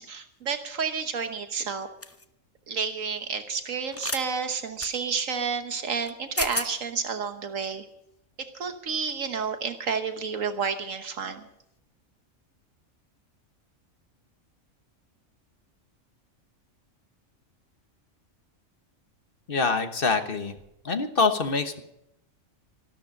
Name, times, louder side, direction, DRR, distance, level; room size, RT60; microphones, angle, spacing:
voice 1, 0.0-1.9 2.7-7.8 8.4-11.5, right 5 dB, 75° right, 8 dB, 1.5 m, -30 dB
sound 1, 2.0-2.2 3.9-4.2 4.8-4.9 6.1-6.2 6.4-6.7, left 3 dB, 20° left, 0.4 m, -31 dB
voice 2, 19.5-20.6 20.8-21.8, left 4 dB, 45° left, 8 dB, 1.4 m, -25 dB
14.0 x 12.5 x 6.5 m, 0.80 s
omnidirectional pair, 1.4 m